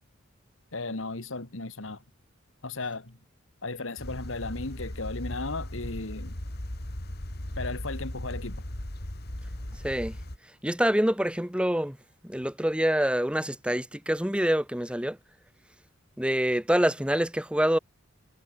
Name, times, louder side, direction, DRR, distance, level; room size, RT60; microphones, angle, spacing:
voice 1, 0.7-2.0 2.6-3.2 3.6-6.4 7.6-8.6, left 3 dB, 75° left, 2.0 m, -35 dB
sound 1, 4.0-10.4, left 1 dB, 50° left, 2.8 m, -37 dB
voice 2, 9.8-10.2 10.6-12.0 12.2-15.2 16.2-17.8, equal, 5° right, 1.6 m, -26 dB
head